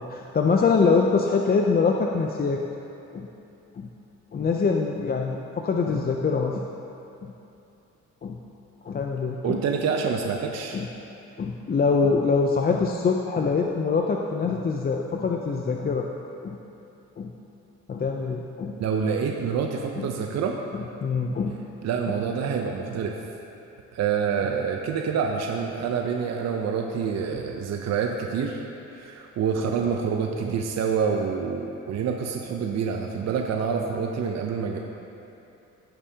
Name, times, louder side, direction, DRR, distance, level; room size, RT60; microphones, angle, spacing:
voice 1, 0.0-2.6 3.1-3.3 3.8-3.9 4.3-6.6 7.2-7.3 8.2-8.4 8.8-9.6 10.7-10.9 11.4-16.1 16.4-16.6 17.2-17.3 17.9-18.7 20.0-20.1 20.7-21.5, left 4 dB, 30° left, 1 dB, 0.5 m, -24 dB
voice 2, 9.4-10.8 18.7-20.6 21.5-23.2 23.9-28.6 28.9-34.8, right 6 dB, 60° right, 2 dB, 0.7 m, -27 dB
16.0 x 5.4 x 2.8 m, 2.8 s
cardioid pair, 90°, 30 cm